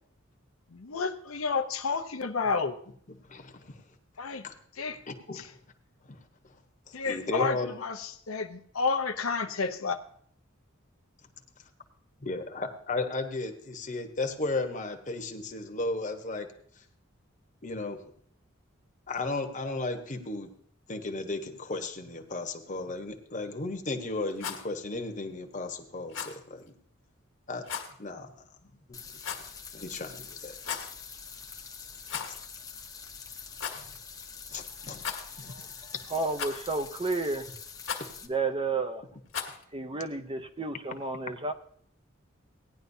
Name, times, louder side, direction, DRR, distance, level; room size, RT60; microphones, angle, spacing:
voice 1, 0.7-2.8 4.2-4.4 4.7-5.0 5.3-5.4 6.9-10.0, left 4 dB, 85° left, 7 dB, 0.8 m, -30 dB
voice 2, 3.3-3.8 4.4-4.6 5.1-5.4 6.1-6.2 6.9-7.7 12.2-16.5 16.8-16.9 17.6-18.0 19.1-20.5 20.9-26.7 27.5-27.6 28.0-28.4 28.9-29.0 29.7-30.6 33.7-33.9 34.5-35.0 35.3-35.7, left 2 dB, 35° left, 5 dB, 1.1 m, -35 dB
Rattle, 24.3-24.7 26.1-26.4 27.6-27.9 29.2-29.6 30.5-30.9 32.0-32.5 32.7-32.8 33.5-33.8 35.0-35.5 36.4-36.8 37.8-38.1 39.3-39.6, left 7 dB, 70° left, 1.6 m, -36 dB
sound 1, 28.9-38.3, left 6 dB, 15° left, 0.8 m, -45 dB
voice 3, 36.1-37.5 38.3-39.0 39.7-41.5, right 3 dB, 25° right, 8 dB, 0.6 m, -31 dB
17.0 x 10.5 x 2.7 m, 0.63 s
head